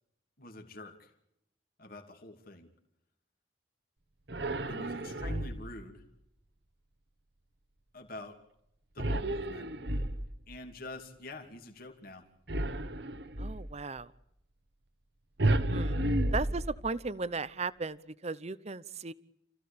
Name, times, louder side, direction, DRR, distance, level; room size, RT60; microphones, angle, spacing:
voice 1, 0.4-1.1 1.8-2.7 4.7-6.0 7.9-8.4 8.9-9.7 10.5-12.3, left 2 dB, 50° left, 4 dB, 2.7 m, -46 dB
sound 1, 4.3-5.8 9.0-10.5 12.5-13.7 15.4-17.1, right 1 dB, 60° right, 1.5 m, -32 dB
voice 2, 13.4-14.1 15.7-16.0 16.3-18.0 18.2-19.1, right 3 dB, 35° right, 17 dB, 0.8 m, -36 dB
29.0 x 15.5 x 8.6 m, 0.81 s
head